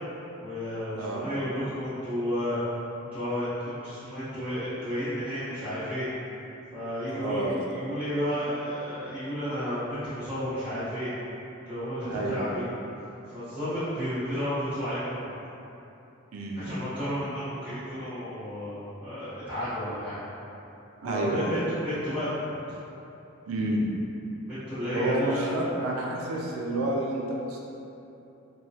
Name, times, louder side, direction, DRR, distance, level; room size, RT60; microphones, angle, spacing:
voice 1, 0.4-2.6 3.0-6.0 6.7-11.1 11.6-12.7 13.3-15.4 16.6-20.2 21.0-22.5 24.5-25.5, equal, 5° right, -17 dB, 0.9 m, -32 dB
voice 2, 0.9-1.3 7.1-7.6 12.0-12.5 16.3-16.6 21.0-21.6 23.5-23.9 24.9-27.6, right 1 dB, 85° right, -2 dB, 0.4 m, -29 dB
3.0 x 2.2 x 2.7 m, 2.9 s
head